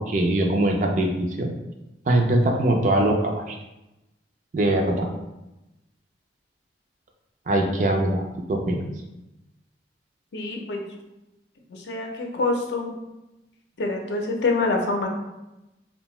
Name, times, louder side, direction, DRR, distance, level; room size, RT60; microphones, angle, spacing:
voice 1, 0.0-1.5 2.1-3.6 4.5-5.1 7.5-8.2 8.5-8.8, right 1 dB, 45° right, 2 dB, 0.4 m, -22 dB
voice 2, 10.3-10.8 11.7-12.9 13.8-15.1, left 3 dB, 75° left, 1 dB, 0.5 m, -26 dB
2.6 x 2.2 x 3.0 m, 0.96 s
head